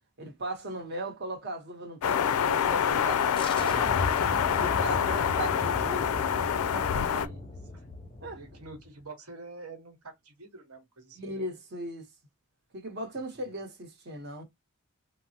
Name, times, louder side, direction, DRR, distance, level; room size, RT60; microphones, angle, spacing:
voice 1, 0.2-3.9 4.6-6.1 6.7-7.2 8.2-8.4 11.2-12.1 12.7-14.4, right 1 dB, 50° right, 0.9 m, -37 dB
sound 1, 2.0-7.3, left 8 dB, 80° left, 0.4 m, -26 dB
sound 2, 3.4-8.9, left 2 dB, 25° left, 0.5 m, -37 dB
voice 2, 4.6-6.0 7.0-7.9 8.4-11.4, right 3 dB, 85° right, 1.1 m, -47 dB
3.3 x 2.0 x 2.7 m
head